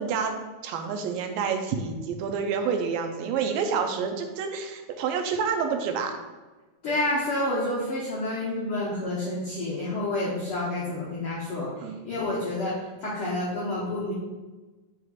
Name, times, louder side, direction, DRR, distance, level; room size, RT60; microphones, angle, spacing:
voice 1, 0.0-6.2 11.8-12.0, right 6 dB, 85° right, 5 dB, 2.3 m, -28 dB
voice 2, 6.8-14.1, left 1 dB, 65° left, -7 dB, 1.3 m, -29 dB
8.9 x 4.6 x 2.4 m, 1.2 s
omnidirectional pair, 4.1 m